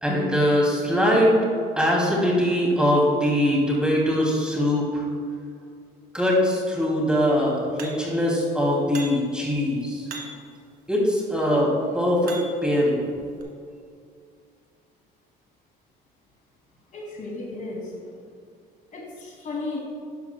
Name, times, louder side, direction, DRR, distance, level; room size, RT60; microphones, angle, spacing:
voice 1, 0.0-1.3 1.8-5.0 6.1-10.0 10.9-13.0, equal, 5° right, -3 dB, 2.5 m, -22 dB
sound 1, 7.8-8.2 8.9-9.4 10.1-10.6 11.4-12.7 13.4-13.5, right 3 dB, 60° right, 1.8 m, -40 dB
voice 2, 16.9-18.1 18.9-19.8, left 3 dB, 50° left, -1 dB, 2.4 m, -34 dB
11.5 x 11.5 x 2.2 m, 2.3 s
cardioid pair, 110°, 17 cm